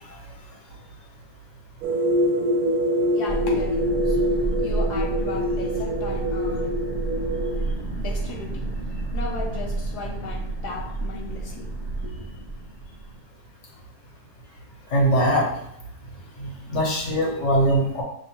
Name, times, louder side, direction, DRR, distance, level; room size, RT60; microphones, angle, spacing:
sound 1, 1.8-7.6, equal, 70° right, 1.0 m, -24 dB
voice 1, 3.0-6.8 8.0-12.3, left 4 dB, 75° left, 0 dB, 1.2 m, -37 dB
sound 2, 3.3-13.2, right 2 dB, 30° left, 0.8 m, -30 dB
voice 2, 14.9-15.5 16.4-18.0, right 1 dB, 50° left, -1 dB, 1.3 m, -21 dB
6.1 x 2.9 x 2.9 m, 0.75 s
omnidirectional pair, 1.8 m